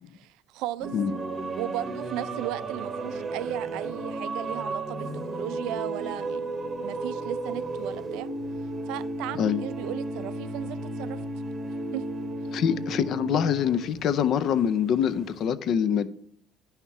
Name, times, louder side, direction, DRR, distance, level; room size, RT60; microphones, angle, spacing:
voice 1, 0.1-0.9 1.5-8.3 8.9-11.2 11.9-12.1, right 14 dB, 75° right, 0.4 m, -36 dB
sound 1, 0.8-15.5, right 2 dB, 20° right, 0.9 m, -34 dB
voice 2, 12.5-16.1, left 8 dB, 45° left, 0.5 m, -25 dB
10.0 x 5.7 x 4.6 m
cardioid pair, 170°, 0 cm